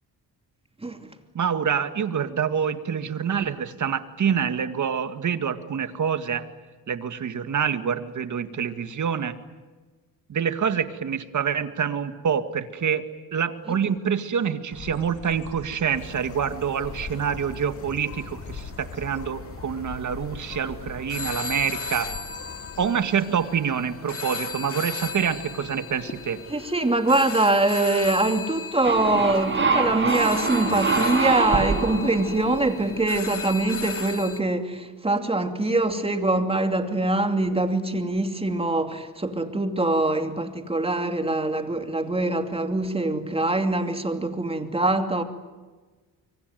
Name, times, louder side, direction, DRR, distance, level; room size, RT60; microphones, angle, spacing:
voice 1, 1.3-6.5 6.9-9.4 10.3-13.0 13.3-22.1 22.8-26.4, right 7 dB, 50° right, 2.2 m, -26 dB
Bird, 14.7-22.9, left 4 dB, 55° left, 3.9 m, -40 dB
sound 1, 16.0-34.4, left 4 dB, 35° left, 2.4 m, -37 dB
voice 2, 26.5-45.2, right 2 dB, 15° right, 2.7 m, -24 dB
sound 2, 28.8-33.3, right 4 dB, 30° right, 5.5 m, -25 dB
25.0 x 24.5 x 9.4 m
cardioid pair, 100°, 37 cm